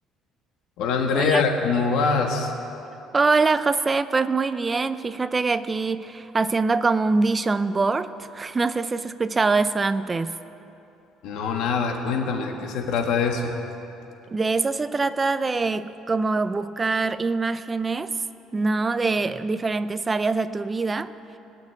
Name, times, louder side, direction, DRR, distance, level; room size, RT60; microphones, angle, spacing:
voice 1, 0.8-2.6 11.2-13.6, left 5 dB, 65° left, 3 dB, 1.7 m, -24 dB
voice 2, 3.1-10.4 14.3-18.1 18.5-21.1, right 3 dB, 15° right, 13 dB, 0.4 m, -24 dB
19.5 x 6.4 x 9.8 m, 2.9 s
cardioid pair, 170°, 0 cm